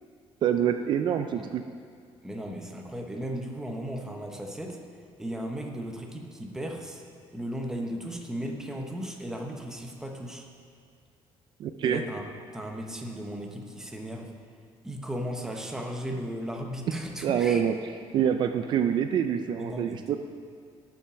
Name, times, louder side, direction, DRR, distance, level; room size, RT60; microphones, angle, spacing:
voice 1, 0.4-1.6 11.6-12.0 17.2-17.7 18.1-20.2, right 9 dB, 50° right, 8 dB, 0.4 m, -26 dB
voice 2, 2.2-4.8 5.2-7.0 7.3-10.5 11.8-12.2 12.5-14.3 14.8-17.6 19.5-20.2, equal, 5° right, 2 dB, 0.8 m, -36 dB
11.5 x 5.7 x 6.1 m, 2.2 s
cardioid pair, 160°, 10 cm